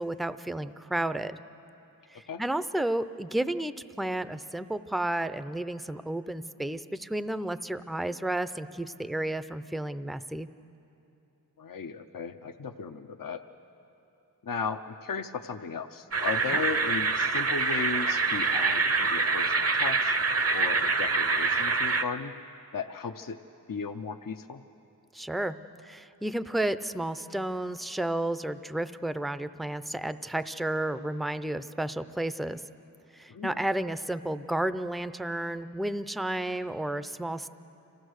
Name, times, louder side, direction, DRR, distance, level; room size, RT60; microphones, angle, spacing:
voice 1, 0.0-1.4 2.1-10.5 16.5-16.6 25.1-25.6 25.8-32.6 33.1-37.5, right 1 dB, ahead, 13 dB, 0.5 m, -32 dB
voice 2, 11.6-13.4 14.4-20.2 20.5-22.3 22.7-23.4 23.7-24.6 33.3-33.6, left 5 dB, 65° left, 7 dB, 0.7 m, -36 dB
sound 1, 16.1-22.0, right 4 dB, 40° right, 0.7 m, -26 dB
26.5 x 16.0 x 6.5 m, 2.9 s
wide cardioid pair, 40°, 36 cm